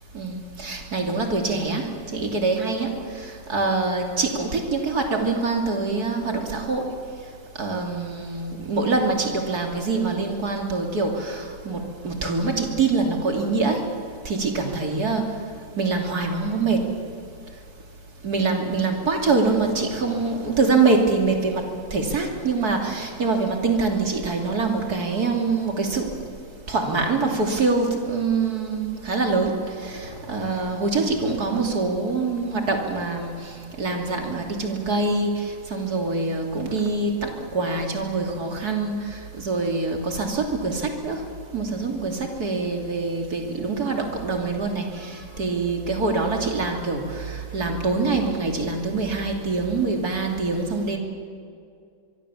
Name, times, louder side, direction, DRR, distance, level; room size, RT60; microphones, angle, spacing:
voice 1, 0.1-2.9 3.2-6.9 7.6-13.8 14.2-15.3 15.8-16.8 18.2-21.6 21.9-26.1 26.7-29.5 29.8-41.2 41.5-51.0, right 3 dB, 55° right, 2 dB, 3.3 m, -24 dB
24.5 x 23.5 x 7.2 m, 2.3 s
omnidirectional pair, 2.0 m